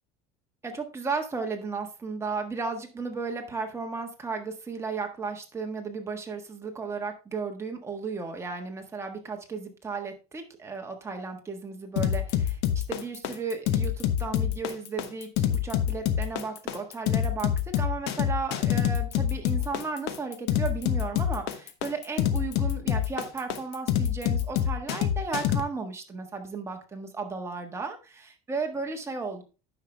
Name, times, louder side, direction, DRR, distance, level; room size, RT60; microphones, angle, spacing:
voice 1, 0.6-17.5 17.8-29.4, right 4 dB, 15° right, 3 dB, 1.5 m, -34 dB
sound 1, 12.0-25.6, left 10 dB, 65° left, 1.1 m, -26 dB
9.5 x 5.9 x 3.4 m, 0.32 s
cardioid pair, 135°, 19 cm